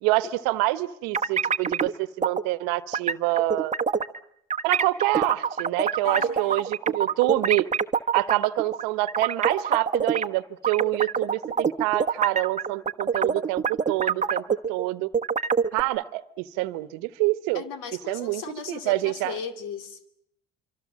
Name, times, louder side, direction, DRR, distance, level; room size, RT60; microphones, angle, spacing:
voice 1, 0.0-3.7 4.6-7.7 8.1-15.1 15.7-17.6 18.1-18.4 18.7-19.4, right 19 dB, 85° right, 15 dB, 1.1 m, -26 dB
sound 1, 1.1-1.9 2.2-2.4 2.9-4.2 4.5-10.3 10.6-14.8 15.1-15.8, right 6 dB, 25° right, 1.1 m, -25 dB
voice 2, 6.0-6.7 17.5-20.1, left 6 dB, 80° left, 9 dB, 2.6 m, -37 dB
25.5 x 25.5 x 7.5 m, 0.72 s
supercardioid pair, 80°, 32 cm